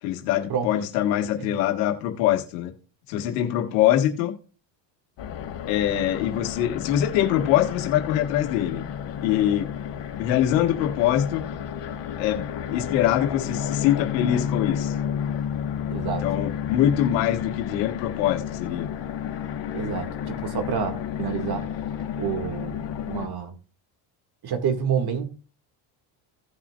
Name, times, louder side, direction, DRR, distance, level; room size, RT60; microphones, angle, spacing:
voice 1, 0.0-2.7 3.1-4.3 5.7-8.9 9.2-9.7 10.2-11.4 12.2-15.0 16.2-18.9, left 11 dB, 90° left, 1.8 m, -23 dB
sound 1, 5.2-23.3, left 8 dB, 60° left, 2.3 m, -31 dB
voice 2, 15.9-16.2 19.7-21.6 22.2-23.6 24.4-25.3, right 7 dB, 50° right, 2.1 m, -28 dB
17.0 x 6.0 x 2.4 m
supercardioid pair, 90°, 50 cm